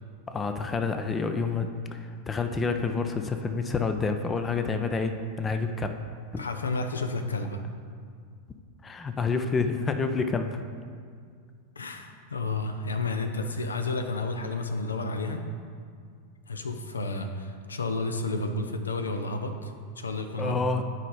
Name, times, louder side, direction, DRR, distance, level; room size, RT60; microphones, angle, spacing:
voice 1, 0.3-6.0 6.3-6.4 8.8-10.6 20.4-20.8, left 4 dB, 20° left, 7 dB, 0.5 m, -28 dB
voice 2, 6.4-7.6 11.8-15.4 16.5-20.6, left 3 dB, 75° left, 7 dB, 0.5 m, -31 dB
9.9 x 5.0 x 3.7 m, 2.1 s
figure-of-eight pair, 90°, 0 cm